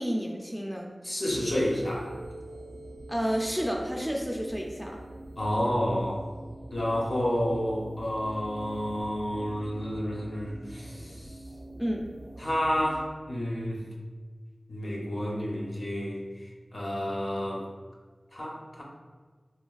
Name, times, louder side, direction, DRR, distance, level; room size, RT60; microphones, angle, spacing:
voice 1, 0.0-0.9 3.1-5.0 11.8-12.0, equal, 5° left, -1 dB, 0.3 m, -30 dB
voice 2, 1.0-2.2 5.4-6.3 6.7-11.3 12.4-13.8 14.7-16.2 16.7-17.7 18.3-18.8, equal, 60° left, -2 dB, 0.6 m, -30 dB
sound 1, 1.3-13.1, right 1 dB, 75° right, 0.4 m, -45 dB
3.3 x 2.2 x 2.3 m, 1.5 s
wide cardioid pair, 55°, 0 cm